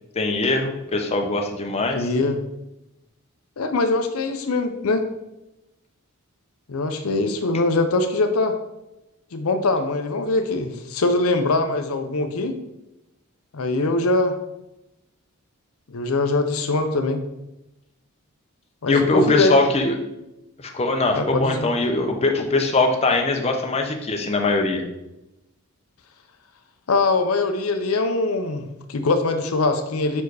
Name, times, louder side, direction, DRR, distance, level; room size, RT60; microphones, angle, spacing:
voice 1, 0.1-2.1 18.9-20.0 20.6-24.8, left 2 dB, 30° left, 3 dB, 0.7 m, -21 dB
voice 2, 1.9-2.4 3.6-5.0 6.7-8.6 9.3-12.6 13.5-14.4 15.9-17.2 18.8-19.6 21.1-21.7 26.9-30.2, left 3 dB, 70° left, 7 dB, 0.6 m, -22 dB
5.7 x 4.7 x 4.7 m, 0.92 s
head